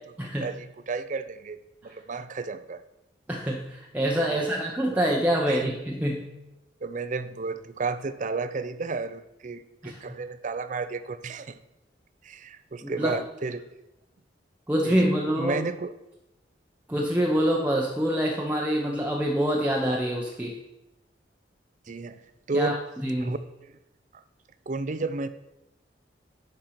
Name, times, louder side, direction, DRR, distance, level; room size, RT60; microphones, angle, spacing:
voice 1, 0.4-2.8 4.3-4.5 5.5-5.8 6.8-11.6 12.2-13.6 14.8-15.1 15.4-15.9 21.9-22.2 22.5-22.8 23.2-23.4 24.1-24.2 24.7-25.3, right 4 dB, 40° right, 13 dB, 0.5 m, -32 dB
voice 2, 3.3-6.3 9.8-10.0 12.8-13.1 14.7-15.6 16.9-20.6 22.5-23.3, equal, 10° right, -2 dB, 0.7 m, -26 dB
10.5 x 4.5 x 5.7 m, 0.92 s
head